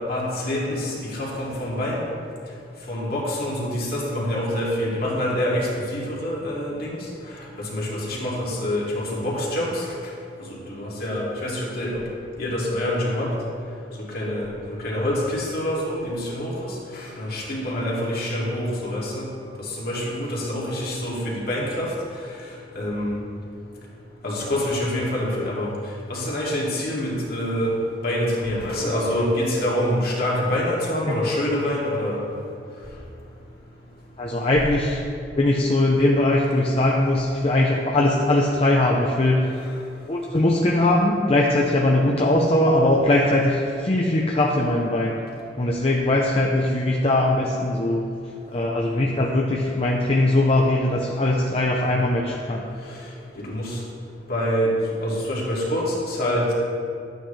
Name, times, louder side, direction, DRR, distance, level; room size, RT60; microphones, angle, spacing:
voice 1, 0.1-2.0 2.9-7.0 7.7-9.8 10.5-12.0 12.4-13.3 14.1-19.2 19.8-21.9 22.7-23.2 24.2-25.7 26.1-27.7 28.0-32.2 49.0-49.1 53.4-53.8 54.3-54.7 55.0-56.5, left 1 dB, 55° left, -5 dB, 2.5 m, -26 dB
voice 2, 34.2-35.1 35.4-39.5 40.1-45.2 45.6-48.1 48.5-52.6, left 1 dB, 35° left, -1 dB, 0.7 m, -20 dB
12.0 x 9.1 x 3.3 m, 2.5 s
head